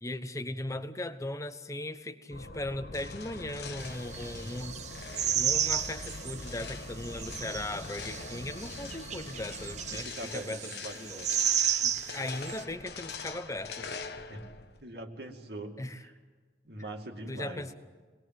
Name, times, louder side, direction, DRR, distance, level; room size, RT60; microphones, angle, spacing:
voice 1, 0.0-4.8 5.3-10.1 10.3-11.2 11.6-13.9 15.8-16.0 16.8-16.9 17.3-17.7, left 1 dB, 20° left, 10 dB, 1.0 m, -38 dB
sound 1, 2.3-10.0, left 1 dB, 80° left, 1.9 m, -44 dB
sound 2, 2.9-14.8, left 5 dB, 65° left, 1.2 m, -45 dB
sound 3, 3.8-6.6 7.0-12.6, right 9 dB, 40° right, 0.8 m, -33 dB
voice 2, 9.9-11.4 14.3-14.4 14.8-16.1 16.6-17.6, right 1 dB, 60° right, 3 dB, 2.5 m, -42 dB
26.0 x 20.0 x 7.7 m, 1.4 s
head